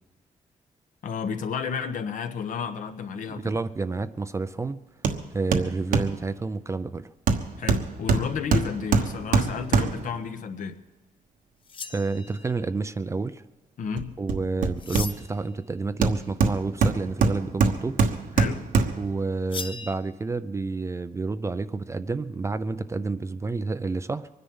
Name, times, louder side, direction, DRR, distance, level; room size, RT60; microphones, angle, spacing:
voice 1, 1.0-3.6 7.6-10.8 13.8-14.1 18.4-18.6, left 6 dB, 65° left, 7 dB, 1.2 m, -31 dB
voice 2, 3.3-4.8 5.3-7.1 11.9-13.4 14.2-18.0 19.0-24.3, right 3 dB, 20° right, 13 dB, 0.4 m, -29 dB
Hammer, 5.0-5.2 5.5-6.2 7.3-10.2 14.0-15.4 16.0-19.1 19.6-19.7, right 4 dB, 70° right, 1.2 m, -24 dB
sound 1, 11.6-12.6 14.8-15.5 19.5-19.9, left 5 dB, 35° left, 0.8 m, -37 dB
23.5 x 10.0 x 5.5 m, 1.2 s
wide cardioid pair, 155°, 14 cm